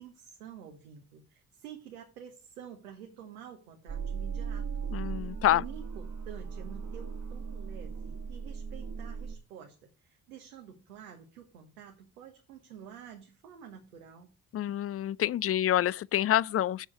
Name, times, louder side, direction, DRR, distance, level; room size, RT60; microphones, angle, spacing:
voice 1, 0.0-4.7 5.5-14.3, right 9 dB, 85° right, 1.3 m, -49 dB
sound 1, 3.9-9.3, right 6 dB, 40° right, 1.6 m, -37 dB
voice 2, 4.9-5.6 14.5-16.9, left 12 dB, 35° left, 0.4 m, -27 dB
7.4 x 7.1 x 6.3 m
figure-of-eight pair, 40°, 42 cm